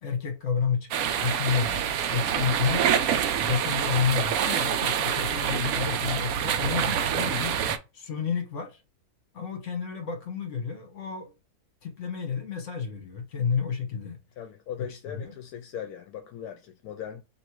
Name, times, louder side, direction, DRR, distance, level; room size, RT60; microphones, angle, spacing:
voice 1, 0.0-2.8 3.4-7.5 7.9-8.8 9.3-11.3 11.8-14.2 14.8-15.3, left 6 dB, 55° left, 1.4 m, -30 dB
sound 1, 0.9-7.8, right 8 dB, 70° right, 1.0 m, -26 dB
voice 2, 14.4-17.2, left 9 dB, 80° left, 1.1 m, -39 dB
3.1 x 2.9 x 4.5 m
omnidirectional pair, 1.6 m